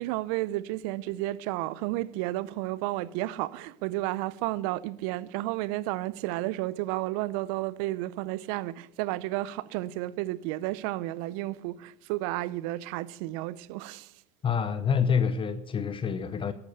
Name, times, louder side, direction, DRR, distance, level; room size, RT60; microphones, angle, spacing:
voice 1, 0.0-14.1, right 17 dB, 65° right, 0.7 m, -32 dB
voice 2, 14.4-16.5, left 6 dB, 30° left, 0.8 m, -27 dB
14.0 x 12.0 x 6.7 m
hypercardioid pair, 85°, 19 cm